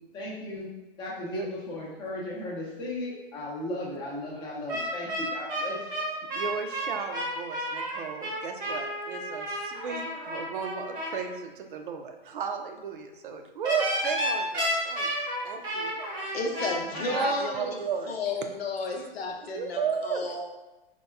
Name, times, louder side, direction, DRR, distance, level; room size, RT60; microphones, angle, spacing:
voice 1, 0.1-0.7 1.0-6.0, left 1 dB, 15° left, -4 dB, 0.6 m, -36 dB
sound 1, 4.7-11.2 13.6-17.3, equal, 15° right, 0.8 m, -32 dB
voice 2, 6.3-15.1 15.4-16.7 17.1-18.5 18.9-19.1 19.5-20.3, right 6 dB, 55° right, 5 dB, 0.5 m, -34 dB
voice 3, 16.3-17.7 18.1-20.4, left 3 dB, 75° left, 2 dB, 0.8 m, -32 dB
4.2 x 2.2 x 3.3 m, 1.1 s
hypercardioid pair, 135°, 30 cm